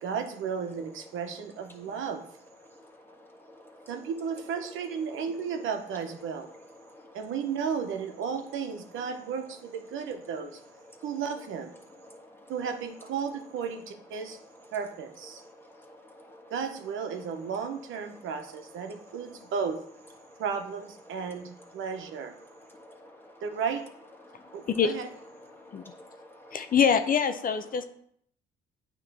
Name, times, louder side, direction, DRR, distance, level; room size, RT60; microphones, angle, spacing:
voice 1, 0.0-2.2 3.9-6.5 7.1-10.6 11.0-11.7 12.5-14.4 14.7-15.4 16.5-19.8 20.4-22.3 23.4-23.9 24.5-25.1, right 6 dB, 80° right, 6 dB, 0.9 m, -34 dB
voice 2, 2.7-3.9 6.8-7.2 10.9-11.0 12.0-12.5 15.3-16.5 19.1-19.2 20.2-20.4 22.5-23.4 24.2-24.7 25.5-26.6, left 1 dB, 10° left, 1 dB, 1.5 m, -52 dB
voice 3, 26.5-27.8, left 7 dB, 45° left, 8 dB, 0.5 m, -24 dB
9.0 x 3.1 x 5.4 m, 0.66 s
cardioid pair, 90°, 20 cm